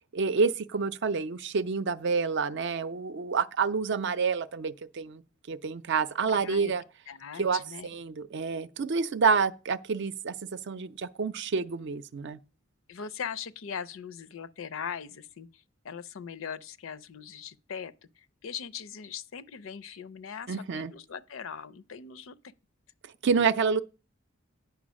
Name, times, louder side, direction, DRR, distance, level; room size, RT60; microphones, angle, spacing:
voice 1, 0.1-5.2 5.5-6.8 7.4-10.3 10.7-12.4 20.5-20.9 23.2-23.8, right 5 dB, 60° right, 0.5 m, -28 dB
voice 2, 6.3-6.7 7.1-7.9 12.9-22.5, left 7 dB, 75° left, 0.5 m, -40 dB
9.3 x 4.8 x 6.3 m
head